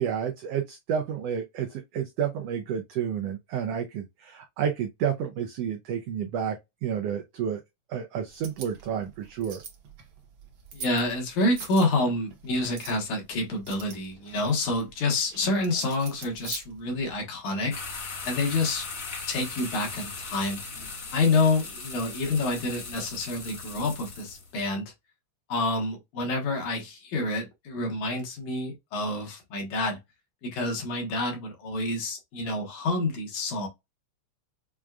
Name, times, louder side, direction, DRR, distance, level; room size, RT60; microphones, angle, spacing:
voice 1, 0.0-6.6 6.8-7.6 7.9-9.6, right 8 dB, 90° right, 1.3 m, -30 dB
sound 1, 8.3-17.2, right 6 dB, 65° right, 1.2 m, -45 dB
voice 2, 10.7-18.9 19.3-20.6 21.1-24.9 25.5-30.0 30.4-33.7, left 2 dB, 85° left, 2.7 m, -28 dB
sound 2, 17.7-24.5, left 4 dB, 65° left, 0.8 m, -38 dB
6.1 x 2.4 x 2.3 m
omnidirectional pair, 3.4 m